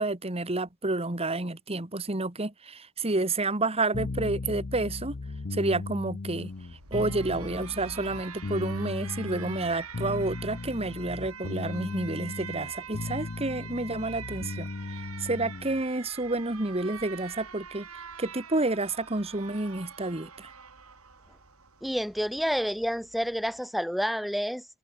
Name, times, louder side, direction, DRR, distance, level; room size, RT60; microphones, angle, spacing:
voice 1, 0.0-5.2 5.5-6.5 6.9-14.7 15.0-17.9 18.2-20.5, right 2 dB, 30° right, 1.7 m, -30 dB
sound 1, 3.9-15.8, left 3 dB, 50° left, 0.7 m, -37 dB
Alarm, 6.4-23.6, right 7 dB, 85° right, 6.9 m, -45 dB
voice 2, 21.8-24.7, equal, ahead, 2.1 m, -29 dB
head